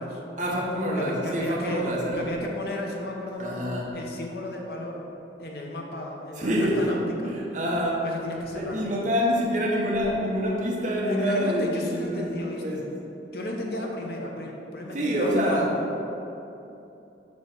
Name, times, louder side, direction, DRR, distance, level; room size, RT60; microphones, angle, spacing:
voice 1, 0.4-2.2 3.4-3.9 6.4-6.9 7.2-8.0 8.5-12.3 12.6-12.8 14.9-15.7, equal, 45° right, -3 dB, 1.1 m, -26 dB
voice 2, 1.0-1.9 2.2-3.7 3.9-5.1 5.4-7.3 8.0-9.0 11.1-12.8 13.3-15.8, left 1 dB, 60° left, 0 dB, 0.8 m, -34 dB
7.2 x 3.1 x 6.0 m, 2.9 s
head